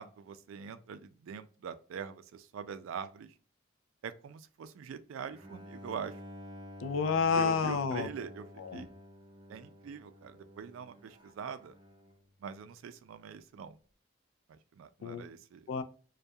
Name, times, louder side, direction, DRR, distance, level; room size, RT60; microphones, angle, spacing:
voice 1, 0.0-3.3 4.0-6.1 7.3-8.4 8.7-8.9 9.5-11.7 12.4-13.8 14.5-15.7, right 7 dB, 90° right, 0.3 m, -43 dB
Bowed string instrument, 5.3-12.3, left 1 dB, 25° right, 0.4 m, -51 dB
voice 2, 6.8-8.1 8.6-8.9 15.0-15.3 15.7-15.8, left 6 dB, 85° left, 0.3 m, -30 dB
2.3 x 2.2 x 2.6 m
head